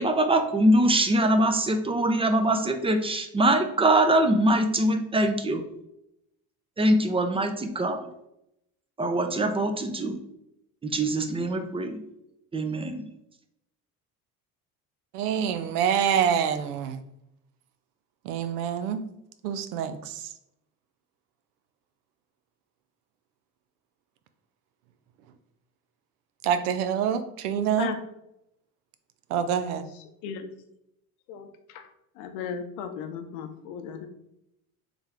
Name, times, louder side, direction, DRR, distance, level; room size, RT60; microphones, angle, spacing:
voice 1, 0.0-5.6 6.8-8.0 9.0-10.2 10.8-12.0 12.5-13.0, right 1 dB, 15° right, 7 dB, 0.4 m, -23 dB
voice 2, 15.1-17.0 18.3-19.0 19.4-20.2 26.4-27.9 29.3-29.9, right 8 dB, 90° right, 11 dB, 0.5 m, -26 dB
voice 3, 31.3-31.8 32.2-34.1, left 7 dB, 80° left, 7 dB, 0.7 m, -36 dB
3.4 x 3.2 x 3.5 m, 0.82 s
supercardioid pair, 80°, 44 cm